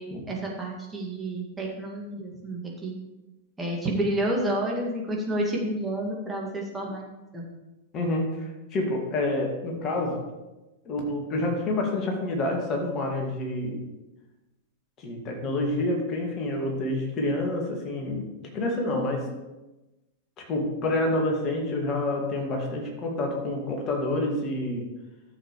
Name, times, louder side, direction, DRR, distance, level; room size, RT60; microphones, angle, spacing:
voice 1, 0.0-3.0 3.6-7.0 7.3-7.4, right 1 dB, 10° right, -2 dB, 2.1 m, -30 dB
voice 2, 7.9-10.2 10.9-13.8 15.0-19.3 20.4-24.9, left 1 dB, 30° left, 0 dB, 2.1 m, -28 dB
13.0 x 7.2 x 3.2 m, 1.1 s
figure-of-eight pair, 95°, 0 cm